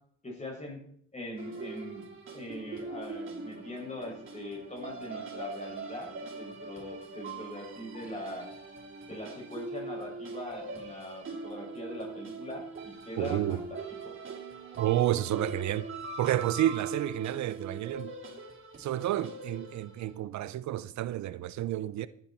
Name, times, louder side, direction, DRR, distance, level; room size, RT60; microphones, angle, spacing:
voice 1, 0.2-0.8 1.1-2.1 2.3-8.5 9.1-13.8 14.0-14.1, left 1 dB, 25° left, 6.5 m, -41 dB
sound 1, 1.4-20.1, right 3 dB, 40° right, 3.5 m, -42 dB
voice 2, 13.2-13.6 14.8-15.8 16.2-18.1 18.8-22.1, right 13 dB, 70° right, 0.6 m, -30 dB
14.5 x 9.8 x 4.4 m
cardioid pair, 90°, 30 cm